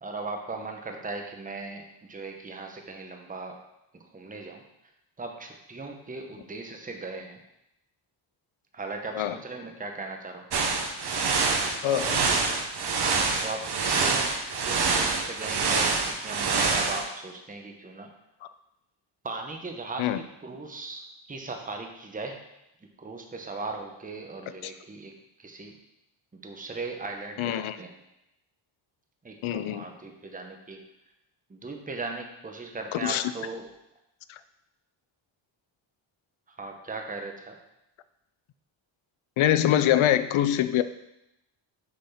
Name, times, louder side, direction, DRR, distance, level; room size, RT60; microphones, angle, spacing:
voice 1, 0.0-3.6 3.9-4.6 5.2-7.4 8.7-10.4 13.4-14.3 14.7-18.1 19.2-20.1 20.4-22.4 23.0-25.1 25.4-25.8 26.3-27.9 29.2-30.8 31.5-33.7 36.6-37.6, right 3 dB, 15° right, 3 dB, 0.9 m, -38 dB
sound 1, 10.5-17.0, right 4 dB, 50° right, 1.0 m, -26 dB
voice 2, 11.8-12.3 20.0-20.2 24.6-24.7 27.4-27.8 29.4-29.8 32.9-33.3 34.3-34.4 39.4-40.8, left 11 dB, 75° left, 13 dB, 0.6 m, -24 dB
6.6 x 4.2 x 5.7 m, 0.86 s
cardioid pair, 100°, 49 cm